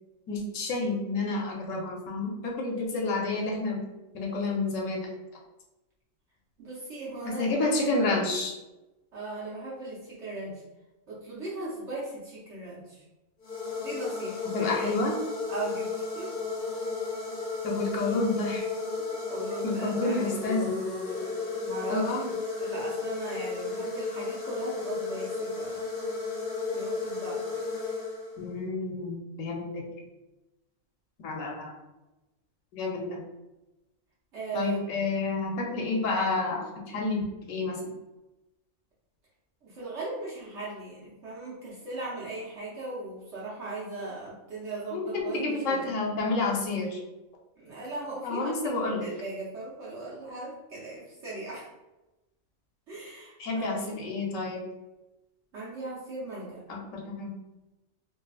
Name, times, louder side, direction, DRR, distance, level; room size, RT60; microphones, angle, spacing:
voice 1, 0.3-3.8 4.1-5.1 7.2-8.5 14.5-15.2 17.6-18.7 19.6-20.8 21.9-22.3 28.4-29.8 31.2-31.7 32.7-33.2 34.5-37.2 37.5-37.9 44.9-47.0 48.2-49.1 53.4-54.6 56.7-57.3, left 3 dB, 85° left, 0 dB, 1.1 m, -29 dB
voice 2, 6.6-7.7 9.1-10.6 11.1-13.0 13.7-15.0 15.5-16.3 19.3-20.7 21.6-25.9 26.7-28.0 34.3-34.8 39.6-45.9 47.6-51.7 52.9-53.9 55.5-56.6, right 2 dB, 65° right, -7 dB, 1.1 m, -38 dB
sound 1, 13.4-28.6, left 4 dB, 50° left, 0.7 m, -33 dB
3.8 x 2.3 x 2.3 m, 1.0 s
omnidirectional pair, 1.3 m